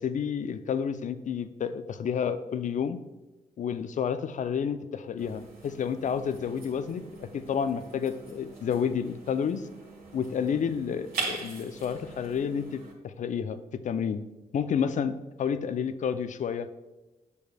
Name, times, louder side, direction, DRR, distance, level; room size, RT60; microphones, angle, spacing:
voice 1, 0.0-3.0 3.6-9.6 10.1-13.6 13.8-14.2 14.5-16.7, left 7 dB, 45° left, 12 dB, 0.5 m, -30 dB
sound 1, 5.2-12.9, right 4 dB, 60° right, 1.8 m, -42 dB
8.3 x 6.4 x 2.3 m, 1.1 s
hypercardioid pair, 40°, 17 cm